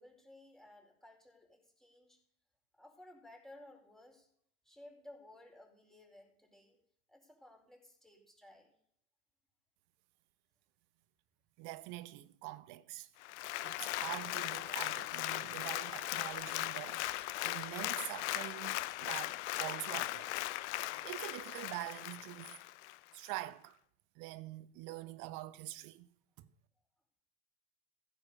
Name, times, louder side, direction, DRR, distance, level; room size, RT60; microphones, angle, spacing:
voice 1, 0.0-2.2 2.7-4.3 4.6-6.8 7.1-8.7, left 1 dB, ahead, 4.5 m, -57 dB
voice 2, 11.6-13.1 13.6-20.3 20.8-22.6 23.1-23.8 24.1-26.1 26.4-26.5, right 17 dB, 55° right, 0.9 m, -45 dB
Applause, 13.2-23.0 23.4-23.5, left 17 dB, 70° left, 0.7 m, -38 dB
15.0 x 7.4 x 5.5 m
hypercardioid pair, 75°, 36 cm